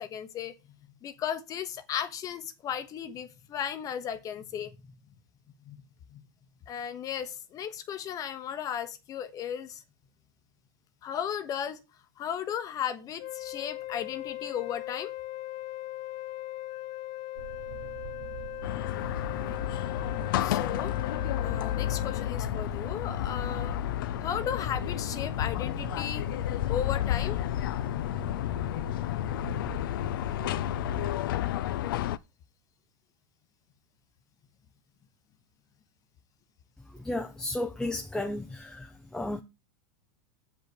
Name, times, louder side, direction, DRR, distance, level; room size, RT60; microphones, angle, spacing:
voice 1, 0.0-4.8 5.6-5.8 6.1-6.3 6.7-9.8 11.0-11.8 12.2-15.1 20.4-20.9 21.4-27.4, left 9 dB, 30° left, 1.0 m, -35 dB
Wind instrument woodwind instrument, 13.2-22.3, left 15 dB, 60° left, 0.9 m, -39 dB
sound 1, 17.3-31.1, right 7 dB, 85° right, 1.3 m, -43 dB
sound 2, 18.6-32.2, left 14 dB, 80° left, 0.5 m, -31 dB
voice 2, 37.0-38.9 39.1-39.4, left 1 dB, 5° left, 0.6 m, -33 dB
7.4 x 5.3 x 6.6 m
supercardioid pair, 140°, 11 cm